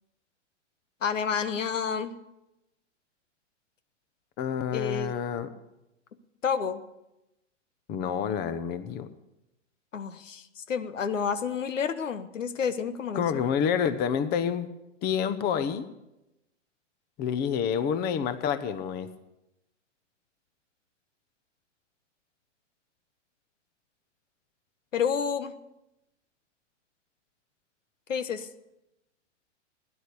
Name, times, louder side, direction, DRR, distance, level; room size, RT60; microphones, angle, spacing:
voice 1, 1.0-2.1 4.7-5.1 6.4-6.8 9.9-13.4 24.9-25.5 28.1-28.5, left 6 dB, 85° left, 12 dB, 1.3 m, -30 dB
voice 2, 4.4-5.5 7.9-9.1 13.1-14.7 15.0-15.9 17.2-19.1, left 7 dB, 25° left, 12 dB, 1.0 m, -28 dB
16.5 x 10.5 x 6.9 m, 0.92 s
hypercardioid pair, 130°, 37 cm